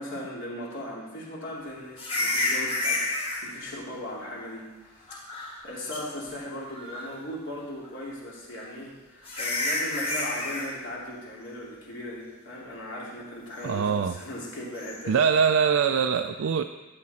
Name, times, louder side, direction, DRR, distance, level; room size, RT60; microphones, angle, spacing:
voice 1, 0.0-15.2, left 1 dB, 65° left, -4 dB, 2.9 m, -38 dB
sound 1, 2.0-3.4 5.1-5.6 5.9-6.0 6.7-7.2 8.6-8.7 9.2-10.7 14.8-15.0, left 2 dB, 30° left, 1.9 m, -29 dB
voice 2, 13.6-14.2 15.1-16.6, right 6 dB, 70° right, 7 dB, 0.4 m, -23 dB
12.5 x 7.4 x 4.3 m, 1.2 s
head